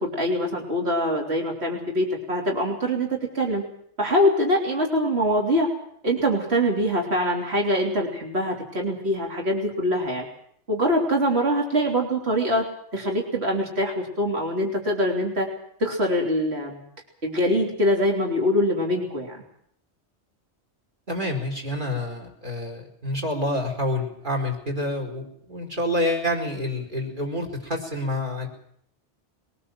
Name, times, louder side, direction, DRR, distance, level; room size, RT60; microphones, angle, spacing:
voice 1, 0.0-3.7 4.0-5.7 6.0-10.3 10.7-12.6 12.9-15.5 15.8-16.8 17.2-19.4, equal, 65° right, 1 dB, 3.7 m, -24 dB
voice 2, 21.1-28.5, left 1 dB, 45° right, 3 dB, 4.8 m, -28 dB
22.0 x 19.0 x 7.6 m, 0.67 s
omnidirectional pair, 1.2 m